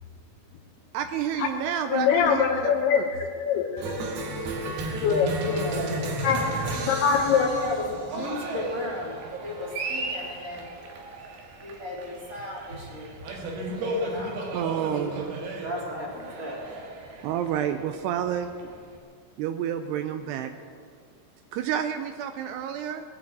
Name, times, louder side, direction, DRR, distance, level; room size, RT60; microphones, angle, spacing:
voice 1, 0.9-3.0 4.1-4.2 9.6-9.7 14.5-15.4 17.2-18.7 19.4-20.5 21.5-23.0, right 9 dB, 85° right, 8 dB, 2.5 m, -30 dB
voice 2, 1.7-4.3 4.6-5.3 6.2-6.5 6.9-7.5, left 7 dB, 75° left, 3 dB, 2.7 m, -24 dB
Cheering, 3.8-18.9, right 1 dB, 65° right, 3.5 m, -34 dB
voice 3, 5.4-5.9 6.4-6.9 7.2-10.7 11.6-13.1 13.7-14.4 15.6-16.6, left 1 dB, 20° right, -4 dB, 3.1 m, -35 dB
18.5 x 8.7 x 8.0 m, 2.1 s
omnidirectional pair, 5.1 m